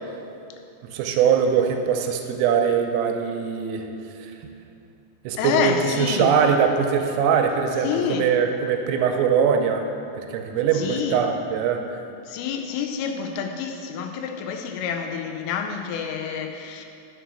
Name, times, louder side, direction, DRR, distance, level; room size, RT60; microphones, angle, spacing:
voice 1, 0.8-3.9 4.2-4.3 5.2-9.9 10.1-11.8, right 7 dB, 85° right, 4 dB, 3.2 m, -22 dB
voice 2, 5.4-6.3 7.8-8.3 10.7-11.2 12.3-16.9, left 7 dB, 85° left, 5 dB, 3.1 m, -28 dB
9.2 x 6.8 x 6.2 m, 2.6 s
omnidirectional pair, 6.0 m